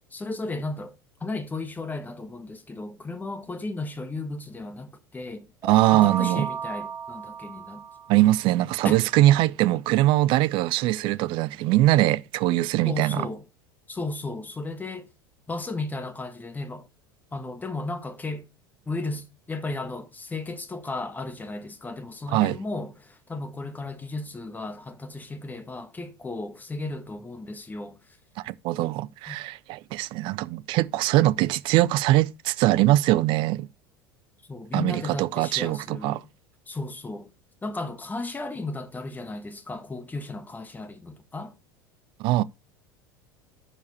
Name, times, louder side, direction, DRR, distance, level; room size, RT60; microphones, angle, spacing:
voice 1, 0.1-0.9 1.2-5.5 5.9-7.8 8.8-9.0 12.8-13.4 13.9-15.1 15.5-16.9 17.3-18.5 18.9-28.2 29.3-29.4 34.5-36.3 36.7-37.3 37.6-41.5, left 2 dB, 15° left, 1.4 m, -34 dB
sound 1, 5.6-8.4, right 6 dB, 20° right, 1.3 m, -34 dB
voice 2, 5.6-6.5 8.1-13.3 22.3-22.6 28.4-33.7 34.7-36.2 42.2-42.4, right 16 dB, 45° right, 0.5 m, -22 dB
14.0 x 4.8 x 4.1 m
figure-of-eight pair, 75°, 12 cm